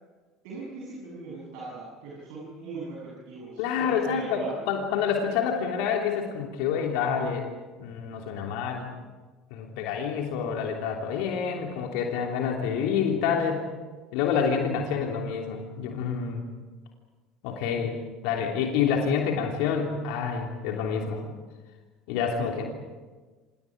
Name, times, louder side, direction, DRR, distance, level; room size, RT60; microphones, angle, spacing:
voice 1, 0.4-4.6 22.4-22.6, right 3 dB, 60° right, -5 dB, 7.4 m, -40 dB
voice 2, 3.6-4.4 4.7-7.5 7.8-8.9 9.5-13.6 14.1-16.4 17.4-18.0 18.2-21.2 22.1-22.6, left 7 dB, 60° left, 1 dB, 3.1 m, -27 dB
29.0 x 27.5 x 5.1 m, 1.3 s
figure-of-eight pair, 65°, 0 cm